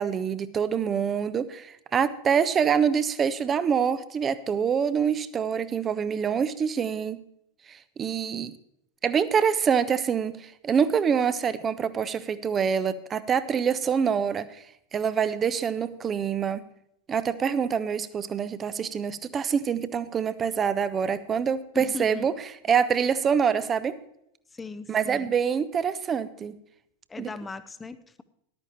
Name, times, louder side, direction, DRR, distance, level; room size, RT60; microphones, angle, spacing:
voice 1, 0.0-7.2 7.7-8.5 9.0-14.5 14.9-16.6 17.1-22.3 22.7-23.9 24.9-26.6 27.2-27.3, right 7 dB, 25° right, 15 dB, 0.7 m, -25 dB
voice 2, 21.7-22.3 24.5-25.3 27.1-28.2, left 4 dB, 15° left, 13 dB, 0.7 m, -38 dB
14.0 x 12.0 x 3.1 m, 0.76 s
figure-of-eight pair, 90°, 0 cm